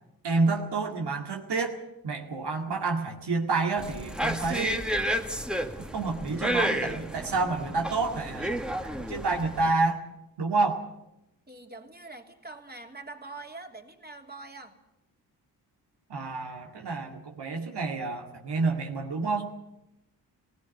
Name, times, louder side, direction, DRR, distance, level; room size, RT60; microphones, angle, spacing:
voice 1, 0.2-4.9 5.9-8.8 9.1-10.0 10.4-10.8 16.1-19.5, right 3 dB, 70° right, 2 dB, 2.2 m, -29 dB
sound 1, 3.8-9.7, equal, ahead, 1.9 m, -31 dB
voice 2, 11.5-14.8, right 3 dB, 25° right, 4 dB, 3.1 m, -44 dB
17.0 x 16.5 x 9.2 m, 0.90 s
supercardioid pair, 45°, 42 cm